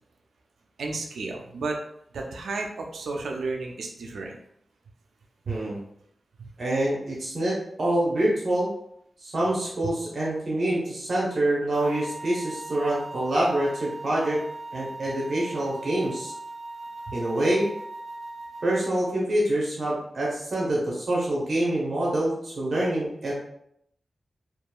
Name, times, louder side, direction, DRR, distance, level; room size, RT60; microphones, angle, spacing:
voice 1, 0.8-1.8 2.1-4.4 5.5-5.6 6.4-6.5 17.1-17.2, right 3 dB, 90° right, 2 dB, 0.3 m, -32 dB
voice 2, 5.5-5.8 6.6-8.7 9.2-14.4 14.7-16.3 17.1-17.7 18.6-23.3, right 1 dB, 65° right, -4 dB, 0.8 m, -26 dB
sound 1, 11.7-18.9, right 2 dB, 50° right, 1.1 m, -39 dB
2.8 x 2.3 x 2.2 m, 0.72 s
cardioid pair, 40°, 0 cm